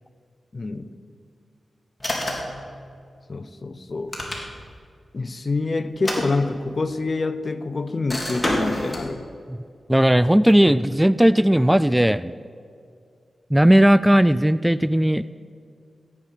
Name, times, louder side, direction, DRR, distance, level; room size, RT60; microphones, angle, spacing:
voice 1, 0.5-0.9 3.3-4.2 5.1-9.3, left 3 dB, 50° left, 13 dB, 0.7 m, -26 dB
sound 1, 2.0-2.6 3.9-4.8 5.9-6.9 8.1-9.1, equal, 15° left, 3.4 m, -28 dB
voice 2, 9.9-12.3 13.5-15.2, equal, 10° right, 16 dB, 0.3 m, -17 dB
16.0 x 8.8 x 5.9 m, 2.2 s
cardioid pair, 45°, 0 cm